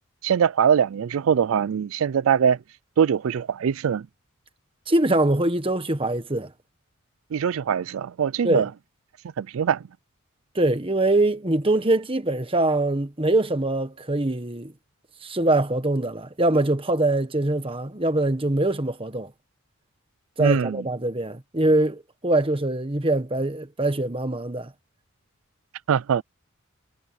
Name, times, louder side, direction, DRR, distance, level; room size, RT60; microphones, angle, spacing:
voice 1, 0.2-2.6 3.0-4.1 7.3-8.7 9.4-9.8 20.4-20.8 25.9-26.2, right 7 dB, 75° right, 0.4 m, -22 dB
voice 2, 4.9-6.5 8.4-8.6 10.5-14.7 15.2-19.3 20.4-24.7, right 2 dB, 25° right, 1.5 m, -23 dB
head